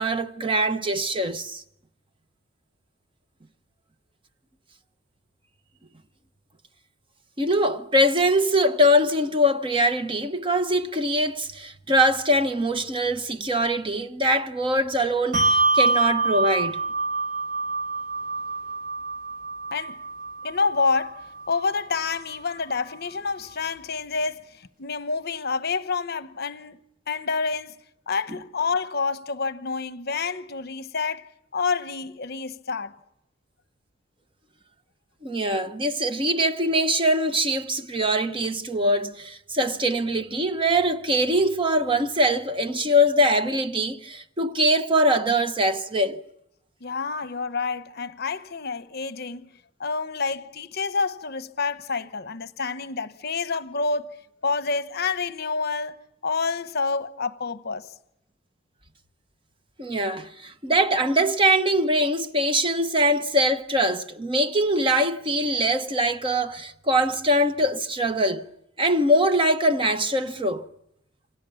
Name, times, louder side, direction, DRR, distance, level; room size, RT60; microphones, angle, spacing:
voice 1, 0.0-1.6 7.4-16.8 35.2-46.2 59.8-68.4 68.8-70.7, equal, 25° right, 1.0 m, -23 dB
Bell, 15.3-22.2, right 3 dB, 45° right, 2.6 m, -26 dB
voice 2, 20.4-26.8 27.1-27.8 28.1-33.0 46.8-49.5 49.8-56.0 56.2-57.9, left 4 dB, 55° left, 1.0 m, -28 dB
28.5 x 25.5 x 7.1 m
head